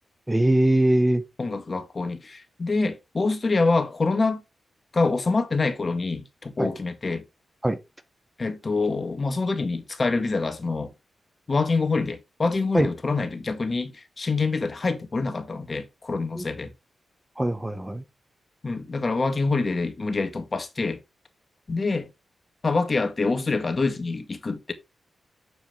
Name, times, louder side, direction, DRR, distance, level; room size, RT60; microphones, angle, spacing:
voice 1, 0.3-1.2 6.6-6.7 7.6-7.8 12.7-12.9 16.4-16.5 17.4-18.0, right 1 dB, 15° right, 1.2 m, -21 dB
voice 2, 1.4-4.4 4.9-7.2 8.4-10.9 11.5-16.7 18.6-21.0 21.7-22.1 22.6-24.7, left 3 dB, 45° left, 1.8 m, -26 dB
7.5 x 7.0 x 3.4 m
cardioid pair, 50°, 0 cm